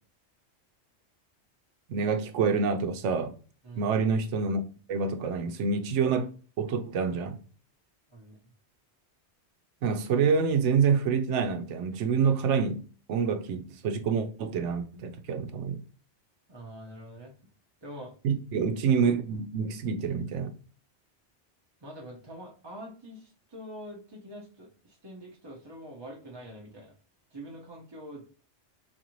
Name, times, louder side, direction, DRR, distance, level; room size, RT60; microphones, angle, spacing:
voice 1, 1.9-3.3 3.8-4.6 4.9-6.3 6.6-7.4 9.8-15.8 18.2-20.5, right 5 dB, 90° right, 0.9 m, -27 dB
voice 2, 3.6-4.0 8.1-8.4 16.5-17.3 17.8-18.1 21.8-26.9 27.3-28.2, equal, 25° right, 0.7 m, -45 dB
4.2 x 2.5 x 3.0 m
omnidirectional pair, 1.2 m